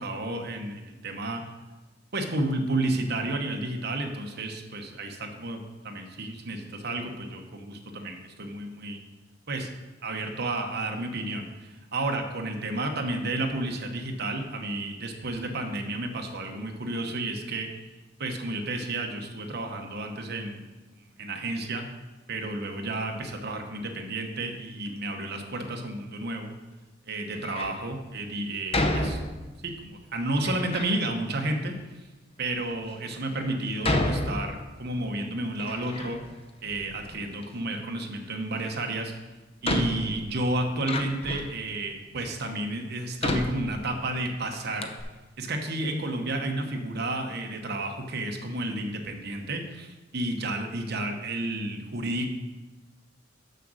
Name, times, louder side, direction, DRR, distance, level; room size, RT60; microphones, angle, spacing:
voice 1, 0.0-1.4 2.1-9.0 9.5-9.7 10.0-17.7 18.2-20.6 21.0-21.9 22.3-26.5 27.1-29.2 29.6-31.7 32.4-36.2 36.6-39.1 39.6-44.9 45.4-52.3, right 2 dB, 55° right, 4 dB, 1.1 m, -31 dB
Door, 27.3-27.8 28.7-29.7 30.4-31.0 31.8-31.9 32.6-32.7 33.8-35.0 35.3-36.4 36.7-37.5 38.9-39.0 39.6-41.6 42.3-42.4 43.2-44.3 44.5-44.6 44.8-45.0, left 1 dB, 30° left, 0.7 m, -30 dB
6.7 x 6.3 x 6.3 m, 1.2 s
head